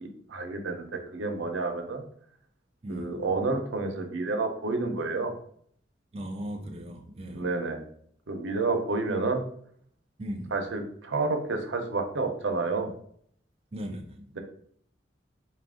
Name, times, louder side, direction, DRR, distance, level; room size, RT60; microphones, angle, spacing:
voice 1, 0.0-2.0 2.9-5.3 7.3-7.8 8.3-9.4 10.5-12.9, right 3 dB, 85° right, 0.7 m, -30 dB
voice 2, 2.8-3.3 6.1-7.5 10.2-10.5 13.7-14.4, equal, 30° right, 0.3 m, -38 dB
4.6 x 2.5 x 3.6 m
head